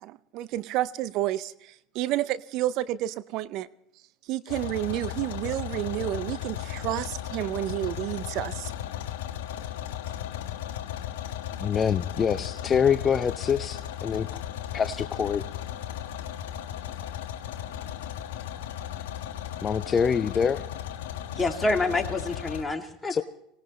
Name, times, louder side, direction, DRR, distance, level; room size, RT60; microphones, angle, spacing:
voice 1, 0.0-3.7 4.3-8.7, right 14 dB, 60° right, 17 dB, 0.5 m, -30 dB
sound 1, 4.5-22.6, left 11 dB, 80° left, 1.2 m, -36 dB
voice 2, 11.6-14.4 14.7-15.4 19.6-20.6 23.1-23.2, left 7 dB, 35° left, 11 dB, 0.6 m, -25 dB
voice 3, 21.4-23.2, left 2 dB, 15° left, 3 dB, 2.4 m, -27 dB
24.0 x 18.5 x 3.1 m, 0.78 s
hypercardioid pair, 80°, 0 cm